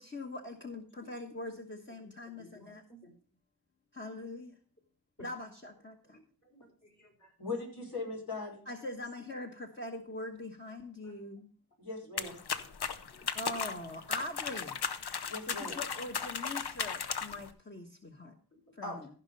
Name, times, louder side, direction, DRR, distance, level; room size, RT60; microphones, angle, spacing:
voice 1, 0.0-2.8 3.9-4.6 5.2-6.2 8.7-11.5 13.3-14.8 15.5-18.3 18.7-19.1, left 1 dB, 30° left, 1 dB, 1.2 m, -42 dB
voice 2, 1.0-1.3 1.9-3.1 6.0-7.3 11.0-11.1 12.0-12.1 12.5-12.7 13.1-13.6 15.5-16.2 18.5-18.8, equal, 50° left, -1 dB, 5.6 m, -59 dB
voice 3, 7.4-8.6 11.8-12.3 15.2-15.8 18.8-19.0, left 3 dB, 65° left, -2 dB, 5.0 m, -39 dB
sound 1, 12.2-17.5, left 6 dB, 85° left, 0.8 m, -36 dB
15.0 x 5.4 x 5.4 m, 0.42 s
wide cardioid pair, 40°, 38 cm